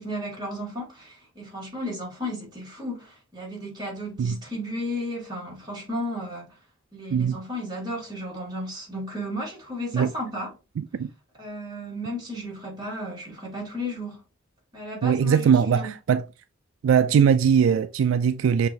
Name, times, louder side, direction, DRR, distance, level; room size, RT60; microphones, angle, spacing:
voice 1, 0.0-6.5 6.9-10.5 11.4-14.2 14.7-15.9, equal, 20° right, 2.4 m, -34 dB
voice 2, 10.8-11.1 15.0-16.3 16.8-18.7, right 7 dB, 75° right, 0.3 m, -20 dB
6.4 x 2.9 x 2.8 m
head